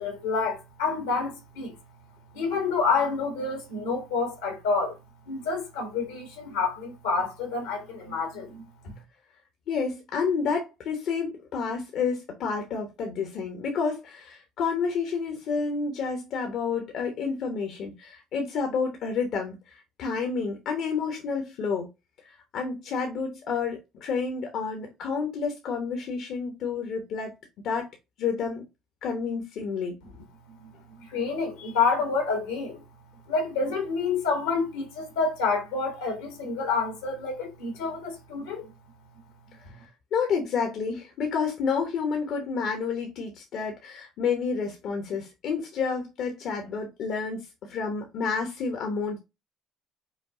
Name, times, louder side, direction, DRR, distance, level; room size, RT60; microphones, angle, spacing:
voice 1, 0.0-1.8 2.3-5.0 5.3-8.6 30.6-30.7 31.0-32.8 33.3-38.7, left 4 dB, 90° left, 1.8 m, -28 dB
voice 2, 9.7-21.9 22.2-27.3 27.6-27.9 28.2-28.6 29.0-30.0 40.1-49.2, left 5 dB, 65° left, 1.0 m, -30 dB
5.2 x 2.3 x 3.7 m
hypercardioid pair, 70°, 0 cm